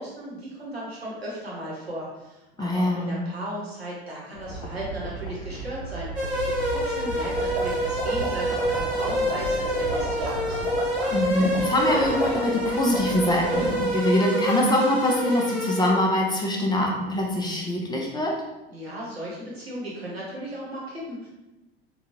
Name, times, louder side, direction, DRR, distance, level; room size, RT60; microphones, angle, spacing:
voice 1, 0.0-10.6 18.7-21.3, equal, 90° right, -5 dB, 0.9 m, -36 dB
voice 2, 2.6-3.2 11.1-18.3, left 1 dB, 15° left, -2 dB, 0.6 m, -24 dB
sound 1, 4.3-10.7, right 3 dB, 85° left, 0.5 m, -36 dB
sound 2, 6.2-15.9, equal, ahead, 1.1 m, -27 dB
sound 3, 7.1-14.0, right 2 dB, 55° right, 0.8 m, -33 dB
3.6 x 2.3 x 2.9 m, 1.0 s
figure-of-eight pair, 75°, 30 cm